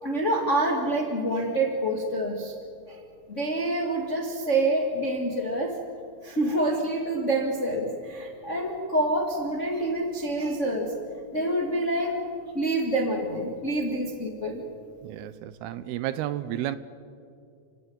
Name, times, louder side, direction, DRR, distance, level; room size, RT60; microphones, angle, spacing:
voice 1, 0.0-2.5 2.9-3.0 3.3-5.7 6.2-10.9 11.3-12.1 12.5-14.6, right 1 dB, 35° left, 3 dB, 1.2 m, -27 dB
voice 2, 15.0-16.8, right 12 dB, 80° right, 15 dB, 2.6 m, -32 dB
29.5 x 16.5 x 9.6 m, 2.4 s
omnidirectional pair, 4.7 m